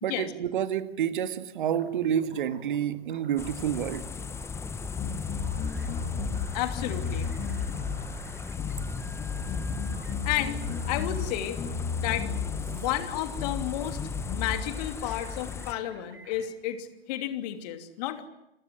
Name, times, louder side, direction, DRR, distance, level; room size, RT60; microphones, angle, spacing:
voice 1, 0.0-4.0, right 9 dB, 55° right, 1.8 m, -29 dB
sound 1, 1.7-16.5, right 2 dB, 75° right, 5.8 m, -51 dB
sound 2, 3.4-15.7, left 5 dB, 10° left, 0.9 m, -37 dB
sound 3, 5.0-6.5 6.8-8.0 8.6-8.9 9.2-11.3 11.6-12.8 13.4-13.7 14.0-14.6, left 6 dB, 25° left, 2.9 m, -33 dB
voice 2, 6.5-7.3 10.2-12.3 12.7-14.0 14.3-18.3, left 12 dB, 40° left, 3.0 m, -32 dB
29.5 x 20.0 x 7.8 m
figure-of-eight pair, 110°, 30 cm